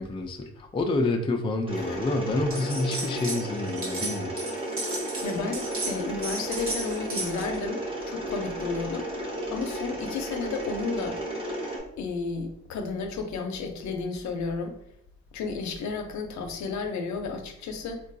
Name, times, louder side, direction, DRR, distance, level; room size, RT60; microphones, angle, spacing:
voice 1, 0.0-4.3, left 2 dB, 20° left, 3 dB, 0.4 m, -28 dB
Mechanisms, 1.7-11.8, right 1 dB, 20° right, 0.9 m, -34 dB
sound 1, 2.5-3.4 3.7-7.6, right 2 dB, 45° right, 1.1 m, -34 dB
voice 2, 5.2-9.1 9.5-11.2 12.0-14.8 15.3-18.0, left 4 dB, 70° left, 4 dB, 0.6 m, -32 dB
3.7 x 2.3 x 2.6 m, 0.73 s
cardioid pair, 90°, 30 cm